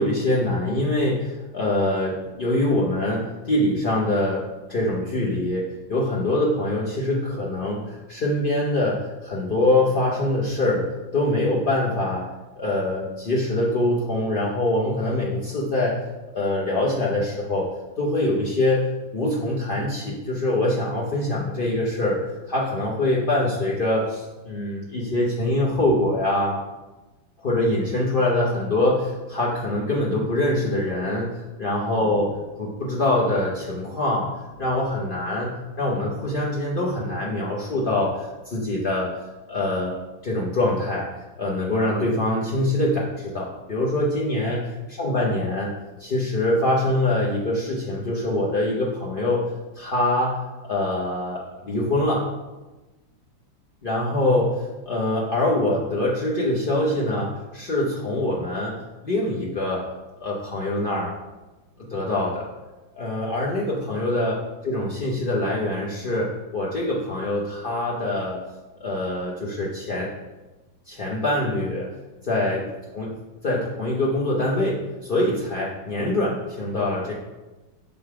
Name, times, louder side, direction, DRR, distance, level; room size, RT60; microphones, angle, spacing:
voice 1, 0.0-10.8 11.1-12.3 12.6-16.0 16.3-17.7 18.0-22.2 22.5-26.6 27.4-32.3 32.6-35.5 35.8-39.1 39.5-40.0 40.2-41.1 41.4-45.7 46.0-49.4 49.7-50.4 50.6-52.2 53.8-58.7 59.0-59.9 60.2-61.1 61.9-62.4 62.9-64.4 64.6-68.4 68.8-70.1 70.9-71.9 72.2-73.1 73.4-77.1, left 1 dB, 50° left, -5 dB, 0.6 m, -24 dB
6.7 x 3.8 x 4.8 m, 1.1 s
omnidirectional pair, 2.1 m